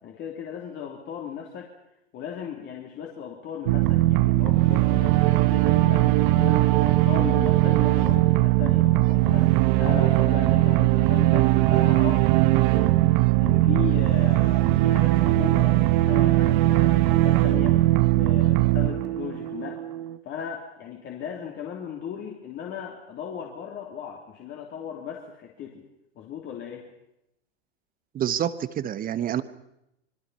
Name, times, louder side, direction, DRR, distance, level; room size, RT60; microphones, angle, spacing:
voice 1, 0.0-1.7 2.1-13.0 13.4-17.8 18.1-19.8 20.2-25.9 26.1-26.9, left 8 dB, 35° left, 0 dB, 3.1 m, -36 dB
sound 1, 3.7-20.2, right 17 dB, 50° right, 1.1 m, -20 dB
voice 2, 28.1-29.4, right 10 dB, 25° right, 14 dB, 1.3 m, -27 dB
26.5 x 22.0 x 5.6 m, 0.84 s
hypercardioid pair, 105°, 33 cm